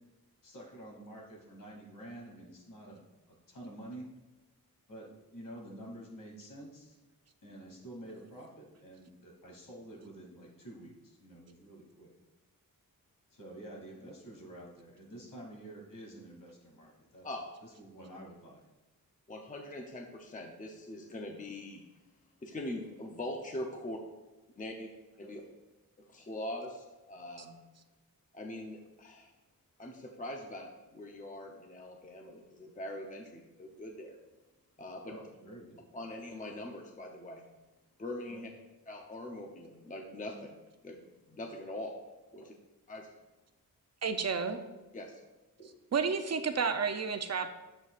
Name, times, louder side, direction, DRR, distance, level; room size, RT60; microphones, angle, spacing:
voice 1, 0.4-4.1 4.9-7.0 7.4-12.1 13.3-17.3 17.6-18.7 25.2-25.3 35.1-35.9 38.3-38.4 42.4-42.5 45.6-45.7, right 1 dB, 65° left, -2 dB, 2.7 m, -49 dB
voice 2, 19.3-21.8 22.4-24.0 24.6-24.9 25.2-25.4 26.0-27.6 28.3-29.3 29.8-34.2 34.8-35.2 35.9-37.5 38.0-38.5 38.9-40.5 40.8-41.9 42.3-42.4 42.9-43.1 44.9-45.2, left 1 dB, 20° left, 2 dB, 0.7 m, -42 dB
voice 3, 44.0-44.7 45.9-47.5, right 5 dB, 45° right, 8 dB, 0.6 m, -31 dB
11.0 x 7.8 x 2.5 m, 1.1 s
wide cardioid pair, 130°, 35 cm